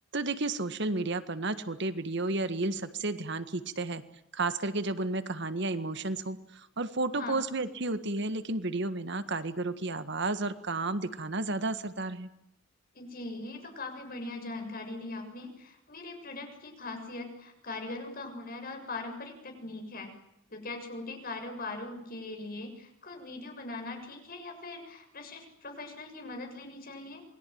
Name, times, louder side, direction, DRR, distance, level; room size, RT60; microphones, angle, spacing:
voice 1, 0.1-4.0 4.3-12.3, right 2 dB, 60° right, 11 dB, 1.7 m, -32 dB
voice 2, 13.0-20.1 20.5-27.2, left 2 dB, 45° left, 4 dB, 6.9 m, -41 dB
28.0 x 21.5 x 9.5 m, 0.83 s
head